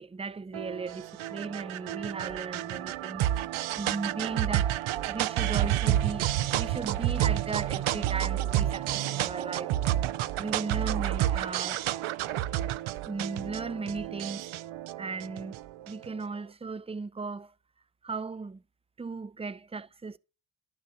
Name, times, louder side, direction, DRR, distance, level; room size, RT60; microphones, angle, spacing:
voice 1, 0.0-3.2 3.8-4.8 5.1-9.9 10.4-11.8 13.1-14.5 15.0-15.6 15.9-17.5 18.0-18.6 19.0-20.2, right 4 dB, 15° right, 0.5 m, -36 dB
sound 1, 0.5-16.1, right 13 dB, 75° right, 0.7 m, -30 dB
11.5 x 6.8 x 6.8 m
supercardioid pair, 65°, 49 cm